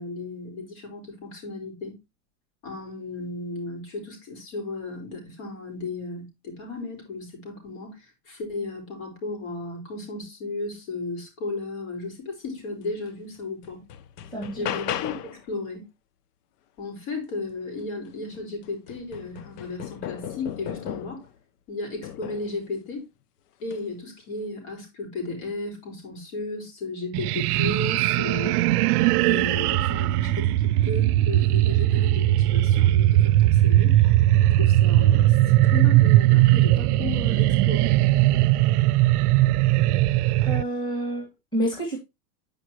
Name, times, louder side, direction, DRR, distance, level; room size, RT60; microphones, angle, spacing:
voice 1, 0.0-1.9 2.6-13.8 14.6-15.8 16.8-21.3 21.7-23.1 23.6-28.6 29.2-34.0 34.6-35.4 35.6-37.9, left 3 dB, 60° left, 5.3 m, -34 dB
sound 1, 13.1-13.2 13.6-15.4 17.8-17.9 18.3-21.3 22.0-22.6 23.6-23.9, left 11 dB, 85° left, 0.7 m, -35 dB
voice 2, 14.3-14.7 40.4-42.0, right 1 dB, 10° left, 2.4 m, -29 dB
sound 2, 27.1-40.6, right 15 dB, 75° right, 0.5 m, -19 dB
10.0 x 5.4 x 2.9 m
supercardioid pair, 145°, 46 cm